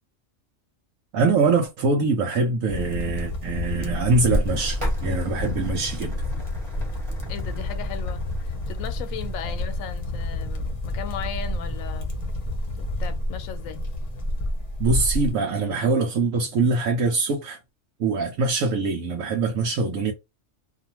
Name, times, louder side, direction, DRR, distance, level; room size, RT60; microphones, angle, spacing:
voice 1, 1.1-6.2 14.8-17.6 18.0-20.1, right 3 dB, 85° right, 1.1 m, -23 dB
sound 1, 2.7-15.3, left 1 dB, 35° left, 0.6 m, -29 dB
sound 2, 4.4-14.5, equal, 25° right, 1.2 m, -39 dB
voice 2, 7.3-12.2 12.8-13.8, left 8 dB, 90° left, 1.0 m, -37 dB
2.5 x 2.4 x 2.8 m
omnidirectional pair, 1.4 m